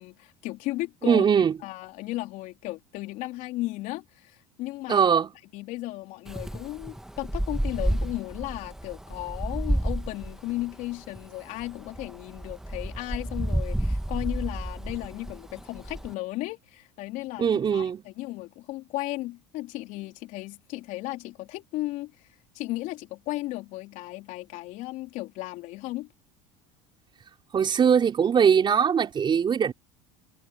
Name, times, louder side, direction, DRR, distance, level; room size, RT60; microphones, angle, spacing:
voice 1, 0.0-1.2 1.6-5.1 5.5-17.5 17.7-22.3 22.5-26.1, left 18 dB, 60° left, 3.7 m, -35 dB
voice 2, 1.0-1.5 4.9-5.3 17.4-18.0 27.5-29.7, right 7 dB, 35° right, 4.5 m, -21 dB
Wind, 6.3-16.1, right 1 dB, 5° right, 1.5 m, -31 dB
supercardioid pair, 100°, 15 cm